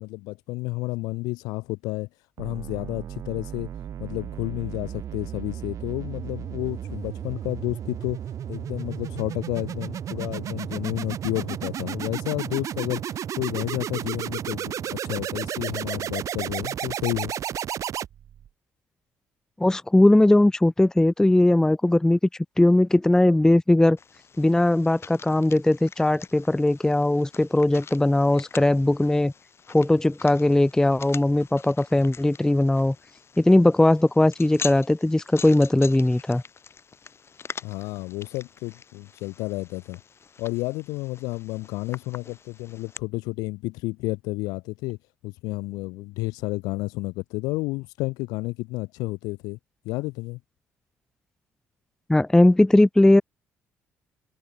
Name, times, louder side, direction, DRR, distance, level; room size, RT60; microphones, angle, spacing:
voice 1, 0.0-2.1 2.4-3.7 4.0-8.2 8.5-13.0 13.4-17.3 37.6-40.0 40.4-45.0 45.2-49.6 49.9-50.4, left 22 dB, 65° left, 1.9 m, -31 dB
sound 1, 2.4-18.5, right 10 dB, 50° right, 0.8 m, -33 dB
voice 2, 19.6-22.2 22.6-24.0 24.4-29.3 29.7-32.9 33.4-36.4 52.1-53.2, left 1 dB, 10° left, 0.6 m, -19 dB
sound 2, 24.0-43.0, left 6 dB, 40° left, 2.3 m, -44 dB
figure-of-eight pair, 45°, 7 cm